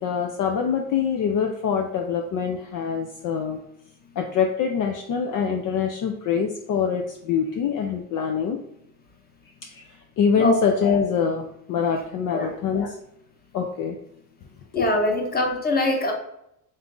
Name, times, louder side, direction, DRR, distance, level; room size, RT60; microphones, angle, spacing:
voice 1, 0.0-3.6 4.2-8.6 9.7-13.0 13.5-14.0 14.7-14.9, left 7 dB, 50° left, 2 dB, 0.5 m, -24 dB
voice 2, 14.7-16.1, left 1 dB, 20° left, 2 dB, 0.9 m, -23 dB
3.8 x 2.7 x 3.6 m, 0.79 s
supercardioid pair, 95°, 41 cm